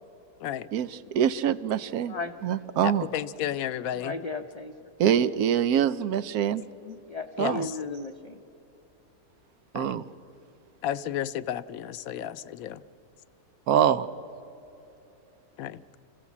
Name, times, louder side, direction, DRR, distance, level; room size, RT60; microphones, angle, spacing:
voice 1, 0.7-2.1 2.4-3.1 5.0-6.6 7.4-7.7 9.7-10.0 13.7-14.1, right 9 dB, 85° right, 15 dB, 1.2 m, -24 dB
voice 2, 2.8-4.1 6.8-7.0 7.4-7.7 9.7-10.0 10.8-12.8 15.6-15.8, left 11 dB, 75° left, 15 dB, 1.0 m, -32 dB
voice 3, 3.9-4.7 5.1-5.4 7.1-8.4, left 3 dB, 45° left, 5 dB, 0.5 m, -36 dB
26.5 x 15.5 x 7.3 m, 3.0 s
omnidirectional pair, 1.6 m